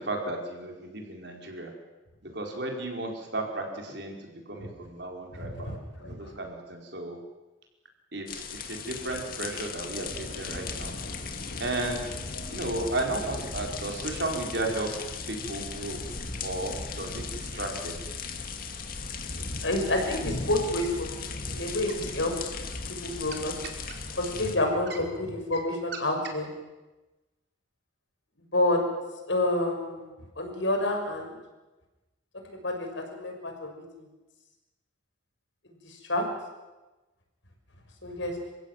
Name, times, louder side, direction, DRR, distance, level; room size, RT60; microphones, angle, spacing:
voice 1, 0.0-1.7 2.2-5.7 6.0-7.2 8.1-10.9 11.6-12.2 12.5-16.0 16.4-18.0 23.3-23.4 23.9-24.0 24.9-25.0 25.9-26.0, right 2 dB, 55° right, 2 dB, 4.8 m, -34 dB
voice 2, 5.4-5.8 19.6-22.5 22.9-23.5 24.2-26.5 28.5-28.8 29.3-30.1 30.4-31.4 32.5-33.7 34.0-34.1 35.8-36.2 38.0-38.3, left 1 dB, 70° left, 2 dB, 6.2 m, -29 dB
sound 1, 8.3-24.6, left 4 dB, 45° left, 2.3 m, -37 dB
28.5 x 15.5 x 9.3 m, 1.1 s
head